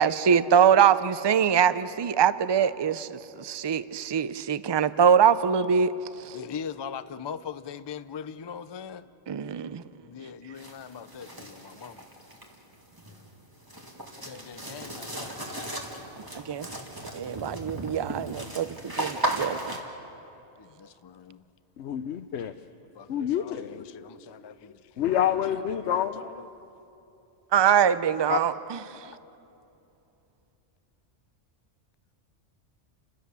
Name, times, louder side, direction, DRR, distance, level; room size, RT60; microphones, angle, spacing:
voice 1, 0.0-6.4 9.3-9.8 16.3-16.7 17.1-19.8 27.5-29.0, right 8 dB, 45° right, 0.3 m, -23 dB
voice 2, 6.3-9.1 10.0-12.0 14.2-15.9 20.6-21.4 22.9-25.0 25.5-26.5 29.0-29.2, left 7 dB, 40° left, 0.4 m, -41 dB
sound 1, 10.6-19.8, right 1 dB, 20° right, 2.1 m, -36 dB
voice 3, 21.8-22.5 23.1-23.8 25.0-26.2 28.3-28.4, left 10 dB, 75° left, 0.9 m, -27 dB
30.0 x 16.0 x 6.9 m
omnidirectional pair, 1.2 m